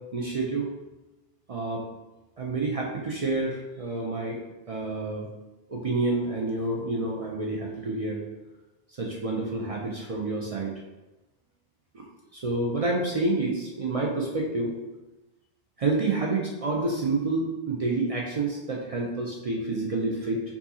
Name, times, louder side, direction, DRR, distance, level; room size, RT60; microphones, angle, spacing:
voice 1, 0.1-0.7 1.5-1.8 2.4-4.4 4.7-5.3 5.7-8.2 9.0-10.7 11.9-12.0 12.3-14.7 15.8-20.4, right 3 dB, 50° right, -2 dB, 0.4 m, -28 dB
4.6 x 2.7 x 2.7 m, 1.1 s
omnidirectional pair, 1.1 m